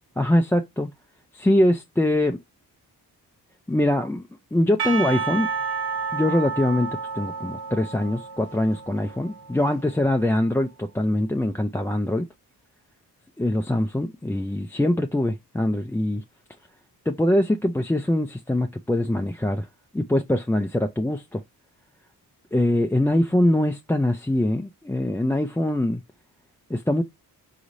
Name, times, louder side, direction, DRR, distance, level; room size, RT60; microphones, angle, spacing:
voice 1, 0.2-0.9 1.3-2.4 3.7-5.5 6.1-6.9 7.1-12.3 13.4-16.2 17.1-19.7 19.9-21.4 22.5-26.0 26.7-27.0, left 1 dB, 5° left, 0.4 m, -23 dB
Percussion / Church bell, 4.8-10.0, right 5 dB, 70° right, 1.1 m, -31 dB
3.8 x 3.1 x 2.6 m
cardioid pair, 65°, 40 cm